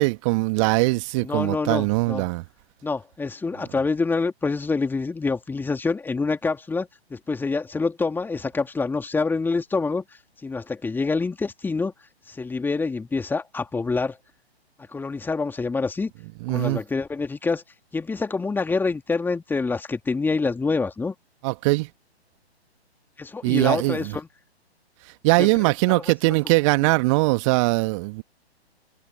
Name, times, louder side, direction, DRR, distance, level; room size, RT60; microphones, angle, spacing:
voice 1, 0.0-2.4 16.4-16.8 21.4-21.9 23.4-24.1 25.2-28.2, right 25 dB, 30° right, 1.7 m, -21 dB
voice 2, 1.2-2.3 2.8-10.0 10.4-11.9 12.3-14.2 14.9-16.1 16.5-17.6 17.9-21.1 23.2-24.3 25.4-26.1, left 4 dB, 5° left, 2.8 m, -26 dB
figure-of-eight pair, 125°, 33 cm